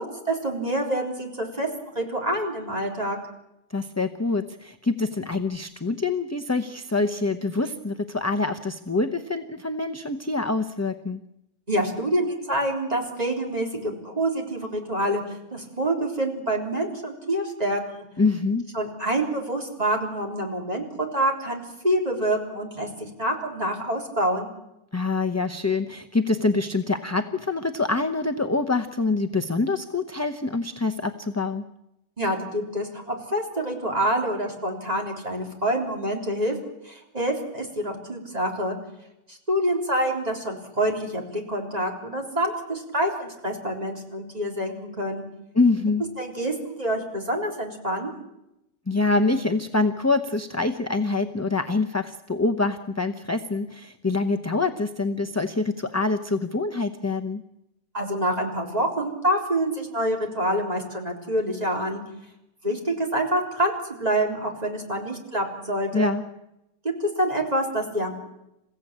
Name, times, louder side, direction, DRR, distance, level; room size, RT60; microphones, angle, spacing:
voice 1, 0.0-1.7 2.0-3.2 11.7-18.0 18.7-24.5 32.2-36.5 36.8-38.8 39.3-45.3 46.2-48.1 57.9-62.0 62.6-63.7 64.0-66.1 67.0-68.2, right 1 dB, 35° right, 0 dB, 3.9 m, -27 dB
voice 2, 3.7-11.2 18.2-18.7 24.9-31.6 45.5-46.0 48.9-57.4 65.9-66.2, left 3 dB, 15° left, 7 dB, 0.8 m, -25 dB
28.5 x 16.0 x 8.7 m, 0.87 s
omnidirectional pair, 1.2 m